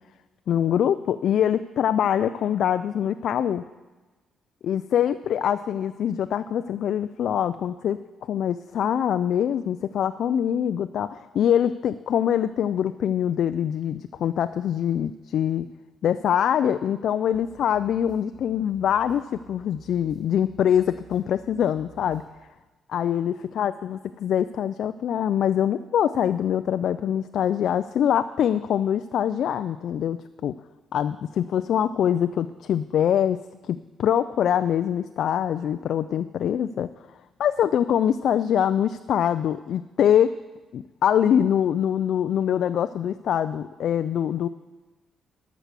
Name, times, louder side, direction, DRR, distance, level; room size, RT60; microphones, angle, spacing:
voice 1, 0.5-3.6 4.6-15.7 16.0-22.2 22.9-30.5 30.9-33.4 33.7-36.9 37.4-40.3 40.7-44.5, left 9 dB, 70° left, 10 dB, 0.3 m, -24 dB
sound 1, 17.3-22.4, right 5 dB, 10° right, 3.8 m, -52 dB
12.5 x 6.1 x 6.7 m, 1.2 s
cardioid pair, 90°, 0 cm